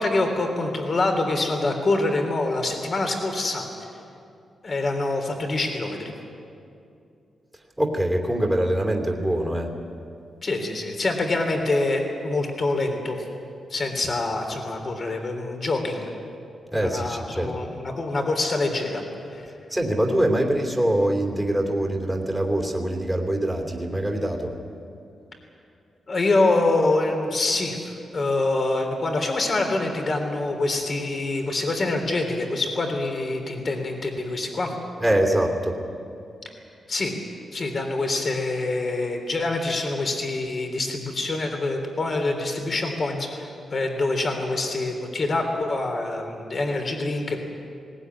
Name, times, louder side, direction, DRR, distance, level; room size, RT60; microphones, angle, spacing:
voice 1, 0.0-3.7 4.6-6.1 10.4-13.2 13.7-16.1 16.7-19.0 19.3-19.5 26.1-34.7 36.9-37.1 37.5-47.4, left 2 dB, 40° left, 4 dB, 3.4 m, -25 dB
voice 2, 7.8-9.7 16.7-17.7 19.7-24.5 35.0-35.8, right 1 dB, 5° right, 0 dB, 2.7 m, -24 dB
20.0 x 19.0 x 9.7 m, 2.6 s
wide cardioid pair, 125°, 0 cm